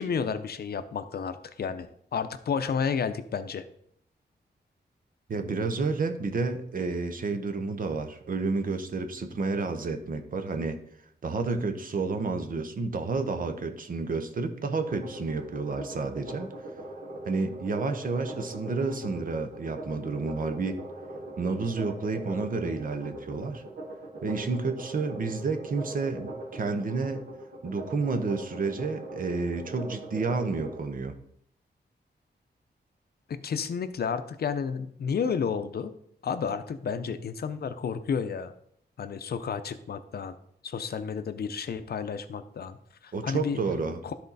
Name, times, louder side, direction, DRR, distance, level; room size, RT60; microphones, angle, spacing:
voice 1, 0.0-3.6 33.3-35.9 36.2-38.5 39.0-40.4 40.6-42.8 43.0-43.6 44.0-44.2, left 6 dB, 60° left, 11 dB, 0.6 m, -31 dB
voice 2, 5.3-10.8 11.2-16.5 17.3-20.8 21.4-23.6 24.2-27.2 27.6-31.1 43.1-44.0, right 4 dB, 50° right, 7 dB, 0.9 m, -30 dB
sound 1, 14.9-30.8, right 1 dB, 75° right, 2.4 m, -41 dB
12.5 x 4.3 x 4.1 m, 0.69 s
wide cardioid pair, 165°, 18 cm